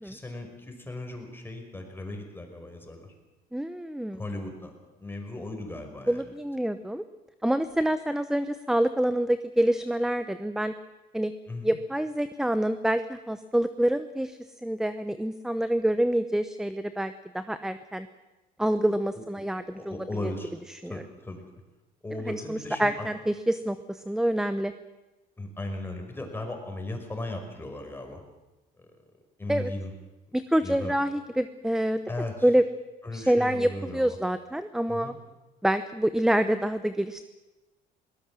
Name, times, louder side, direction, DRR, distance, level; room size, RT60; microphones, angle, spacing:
voice 1, 0.0-3.1 4.1-4.7 5.0-6.2 11.5-11.8 19.1-19.2 19.7-20.5 20.9-21.4 22.0-23.1 25.4-28.2 28.8-28.9 29.4-29.9 30.6-31.0 32.1-32.5 33.0-34.2 34.9-35.2, left 2 dB, 15° left, 3 dB, 5.5 m, -37 dB
voice 2, 3.5-4.2 6.1-7.0 7.4-10.7 11.1-11.3 11.6-18.1 18.6-20.0 20.2-20.3 20.7-21.0 22.2-24.7 29.5-29.7 30.3-32.0 32.4-32.6 33.1-35.1 35.6-37.3, right 1 dB, 5° right, 12 dB, 0.9 m, -27 dB
22.0 x 19.0 x 7.6 m, 1.1 s
cardioid pair, 110°, 17 cm